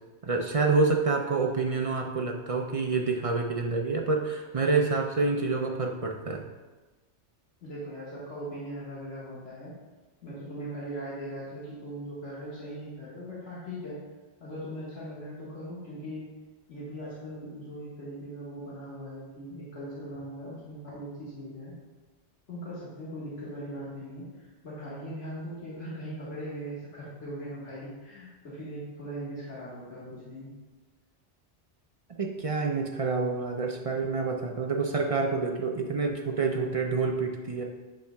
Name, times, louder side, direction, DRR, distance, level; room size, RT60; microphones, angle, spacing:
voice 1, 0.2-6.4 32.2-37.6, right 4 dB, 50° right, 2 dB, 0.4 m, -27 dB
voice 2, 7.6-9.7 10.2-14.0 14.4-16.3 16.7-21.7 22.5-30.5, equal, 75° left, -9 dB, 1.9 m, -40 dB
8.5 x 6.2 x 2.3 m, 1.2 s
omnidirectional pair, 1.2 m